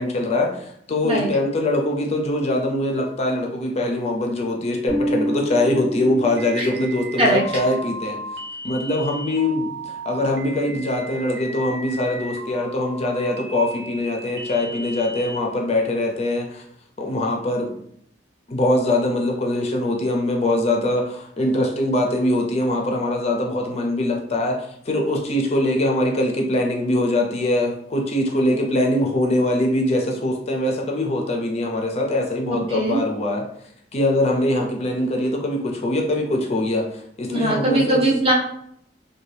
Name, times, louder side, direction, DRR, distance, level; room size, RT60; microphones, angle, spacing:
voice 1, 0.0-8.2 8.6-16.6 17.0-17.7 18.5-33.5 33.9-38.0, left 1 dB, 35° left, 1 dB, 0.4 m, -22 dB
Bass guitar, 4.9-7.3, equal, 85° right, 1.3 m, -28 dB
sound 1, 6.4-15.4, right 1 dB, 65° right, 0.4 m, -36 dB
voice 2, 32.5-33.0 37.3-38.3, right 1 dB, 30° right, -2 dB, 0.7 m, -20 dB
2.6 x 2.2 x 3.2 m, 0.70 s
head